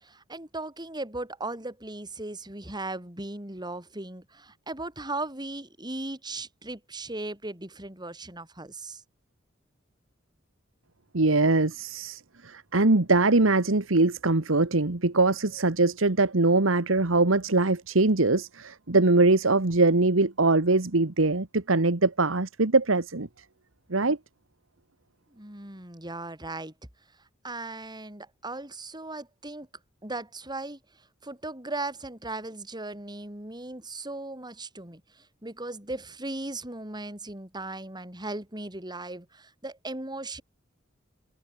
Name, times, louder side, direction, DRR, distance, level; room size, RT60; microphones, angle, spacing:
voice 1, 0.0-9.0 25.3-26.7 27.4-29.7 30.0-30.8 31.2-35.0 35.4-40.4, right 2 dB, 20° right, 5.9 m, -37 dB
voice 2, 11.1-23.3 23.9-24.2, right 3 dB, 85° right, 1.5 m, -22 dB
head